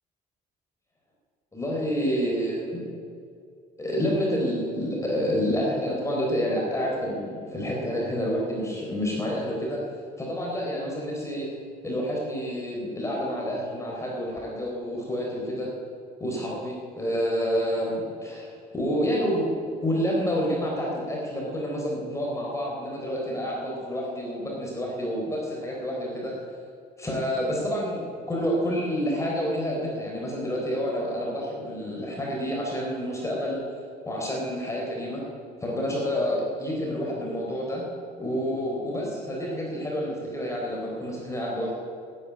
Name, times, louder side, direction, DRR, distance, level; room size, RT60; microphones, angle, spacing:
voice 1, 1.5-2.8 3.8-9.8 10.2-11.5 11.8-15.7 16.2-26.3 27.0-33.6 34.0-35.2 35.6-37.8 38.2-41.8, equal, 15° left, -3 dB, 3.9 m, -28 dB
12.0 x 10.0 x 9.6 m, 2.4 s
cardioid pair, 110°, 17 cm